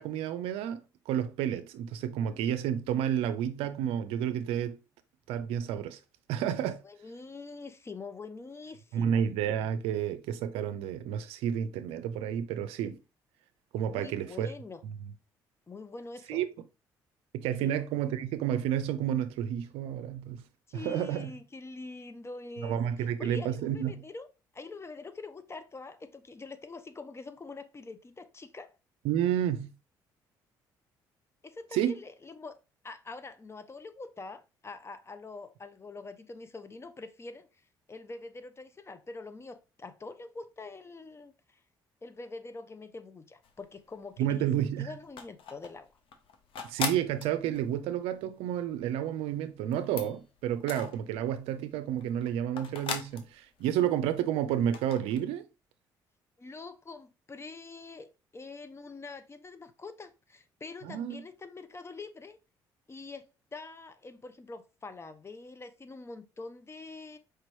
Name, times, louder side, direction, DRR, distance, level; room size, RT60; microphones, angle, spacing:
voice 1, 0.0-4.8 5.3-6.0 6.3-6.8 8.9-13.0 13.7-14.5 16.3-16.5 17.3-20.4 20.7-21.3 22.6-23.9 29.0-29.7 31.7-31.9 44.2-44.9 46.6-55.5 60.8-61.2, right 10 dB, 75° right, 0.4 m, -30 dB
voice 2, 6.8-9.2 13.9-14.8 15.7-16.4 17.6-17.7 20.7-24.3 24.5-28.7 31.4-32.6 32.8-37.5 37.9-41.6 42.0-45.9 56.4-62.4 62.9-67.2, left 3 dB, 25° left, 0.6 m, -45 dB
sound 1, 43.4-44.2 44.4-51.5 51.9-54.2 54.5-55.2, left 6 dB, 65° left, 0.7 m, -40 dB
4.8 x 3.0 x 2.9 m
hypercardioid pair, 60°, 10 cm